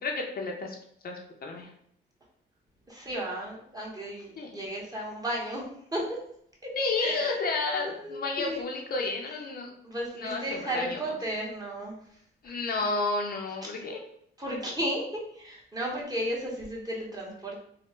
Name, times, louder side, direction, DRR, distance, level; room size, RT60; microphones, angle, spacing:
voice 1, 0.0-0.8 1.0-1.7 4.4-4.6 6.8-9.7 10.1-11.0 12.4-14.0, left 3 dB, 50° left, 1 dB, 0.6 m, -31 dB
voice 2, 2.9-5.6 5.9-6.2 6.6-6.7 7.0-7.4 7.7-8.6 9.8-12.0 13.6-13.7 14.4-15.0 15.3-17.6, right 1 dB, 20° right, -3 dB, 0.9 m, -34 dB
3.2 x 2.1 x 3.0 m, 0.68 s
cardioid pair, 90°, 20 cm